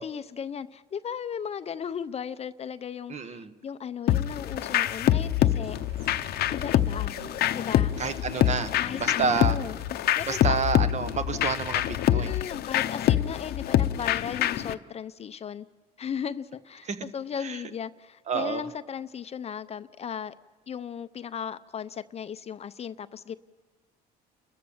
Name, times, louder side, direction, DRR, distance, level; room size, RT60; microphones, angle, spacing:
voice 1, 0.0-5.8 6.5-7.2 7.5-7.9 8.7-9.8 10.2-10.6 12.1-15.7 16.0-20.4 20.7-23.4, left 7 dB, 40° left, 13 dB, 0.6 m, -36 dB
voice 2, 3.1-3.5 8.0-8.7 9.0-9.5 10.3-12.3 16.9-17.0 17.4-17.5 18.3-18.6, right 6 dB, 45° right, 10 dB, 1.3 m, -29 dB
sound 1, 4.1-14.7, left 12 dB, 70° left, 0.8 m, -26 dB
sound 2, 4.4-10.7, right 4 dB, 80° right, 2.6 m, -50 dB
30.0 x 14.0 x 7.2 m, 1.3 s
cardioid pair, 110°, 17 cm